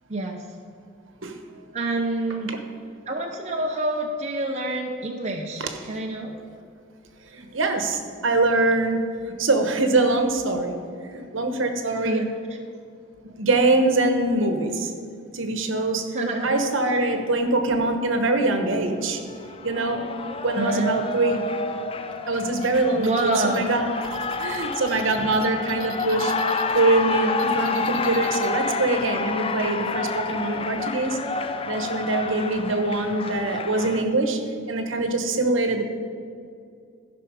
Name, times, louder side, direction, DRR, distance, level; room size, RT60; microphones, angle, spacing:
voice 1, 0.1-0.4 1.7-2.5 3.1-6.4 12.0-12.3 16.1-16.6 16.9-17.0 20.5-21.0 23.0-23.7, right 2 dB, 30° right, 1 dB, 0.6 m, -27 dB
voice 2, 7.3-10.8 11.0-12.2 13.4-14.9 15.3-16.1 16.4-19.2 19.6-20.1 20.4-21.5 22.3-23.9 24.4-26.3 26.7-31.2 31.6-34.4 34.7-35.8, right 2 dB, 65° right, 6 dB, 1.0 m, -23 dB
Cheering, 18.9-34.0, left 4 dB, 25° left, 0.4 m, -29 dB
sound 1, 22.6-26.8 27.1-28.5, right 6 dB, 90° right, 0.9 m, -42 dB
15.5 x 5.9 x 4.8 m, 2.4 s
head